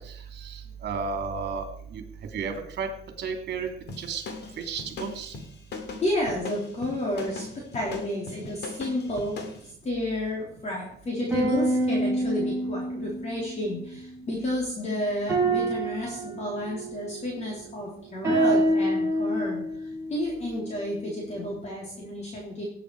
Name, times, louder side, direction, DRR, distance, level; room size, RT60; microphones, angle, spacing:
voice 1, 0.0-2.0 2.3-2.9 3.2-3.7 4.0-4.2 4.6-5.3, right 5 dB, 55° right, 5 dB, 2.8 m, -33 dB
sound 1, 3.9-9.6, left 4 dB, 55° left, 2.4 m, -39 dB
voice 2, 6.0-9.4 9.6-22.6, left 1 dB, 35° left, -3 dB, 3.6 m, -31 dB
sound 2, 11.3-14.4 15.3-17.6 18.2-21.2, right 1 dB, 15° right, 6.3 m, -27 dB
18.5 x 8.8 x 4.8 m, 0.64 s
cardioid pair, 150°, 20 cm